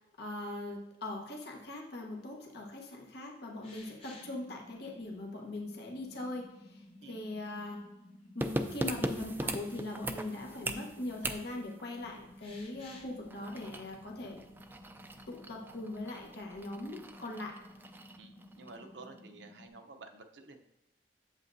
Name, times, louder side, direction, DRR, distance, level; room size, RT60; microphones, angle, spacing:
voice 1, 0.2-7.8 8.3-14.4 15.3-17.6, left 2 dB, 65° left, -1 dB, 1.2 m, -41 dB
sound 1, 3.6-4.4 5.9-6.0 6.9-7.8 8.2-8.3 10.2-10.3 12.4-13.1, left 3 dB, 35° left, 1.3 m, -54 dB
sound 2, 4.1-19.7, left 1 dB, 10° left, 0.9 m, -55 dB
sound 3, 8.4-18.9 19.2-19.3, right 1 dB, 10° right, 0.4 m, -41 dB
voice 2, 18.2-20.6, right 3 dB, 75° right, 5 dB, 0.8 m, -51 dB
8.1 x 7.6 x 2.7 m, 0.86 s
head